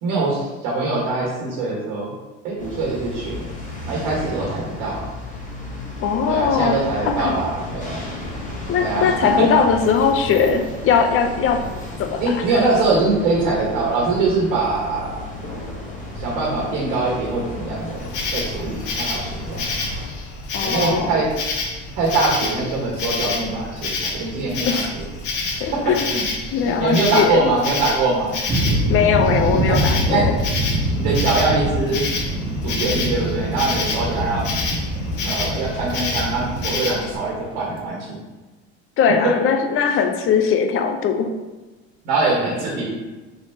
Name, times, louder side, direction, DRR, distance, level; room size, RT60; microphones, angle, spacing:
voice 1, 0.0-2.1 2.4-3.5 3.9-5.1 6.3-8.0 8.8-9.4 12.2-15.2 16.1-19.7 20.6-21.3 22.0-25.0 25.7-26.3 26.6-28.3 29.6-29.8 30.0-30.3 31.0-32.1 32.6-34.5 35.2-38.2 39.2-39.3 42.0-42.9, right 3 dB, 70° right, -3 dB, 1.5 m, -23 dB
sound 1, 2.6-20.1, left 1 dB, 25° left, 1.4 m, -34 dB
voice 2, 6.0-6.8 7.1-7.3 8.7-11.7 12.0-12.2 20.5-21.2 24.7-24.9 25.6-26.0 26.5-27.5 28.9-30.4 39.0-41.3, left 6 dB, 40° left, 6 dB, 0.6 m, -19 dB
Insect, 18.0-37.2, left 3 dB, 65° left, 1.1 m, -28 dB
sound 2, 28.5-37.8, right 1 dB, 15° right, 0.7 m, -24 dB
4.6 x 3.4 x 2.8 m, 1.2 s
supercardioid pair, 90°, 32 cm